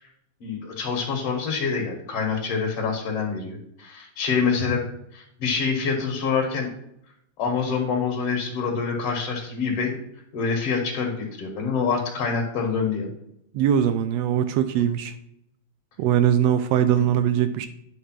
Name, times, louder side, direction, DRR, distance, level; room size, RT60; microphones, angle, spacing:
voice 1, 0.4-4.8 5.1-6.7 7.4-9.9 10.3-13.1 14.8-14.9 16.9-17.0, left 5 dB, 55° left, 0 dB, 2.0 m, -26 dB
voice 2, 13.5-15.1 16.0-17.7, right 9 dB, 90° right, 10 dB, 1.4 m, -21 dB
9.7 x 3.3 x 5.9 m, 0.77 s
omnidirectional pair, 3.5 m